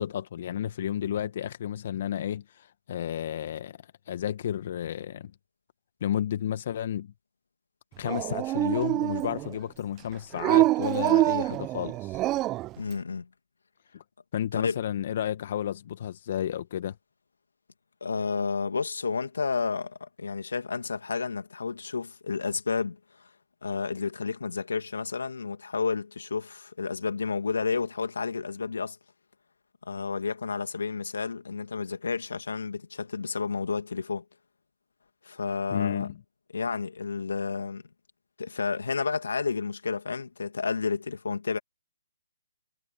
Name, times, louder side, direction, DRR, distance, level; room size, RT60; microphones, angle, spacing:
voice 1, 0.0-3.8 4.1-5.3 6.0-7.1 8.0-12.2 13.9-14.0 14.3-17.0 35.7-36.2, left 10 dB, 50° left, 1.2 m, -32 dB
Dog, 8.0-9.5 10.4-12.7, right 17 dB, 20° right, 0.5 m, -25 dB
voice 2, 12.8-13.3 14.5-14.8 18.0-23.3 23.6-29.0 29.9-34.2 35.2-36.1 36.5-37.8 38.4-41.6, left 5 dB, 80° left, 2.3 m, -31 dB
hypercardioid pair, 150°, 0 cm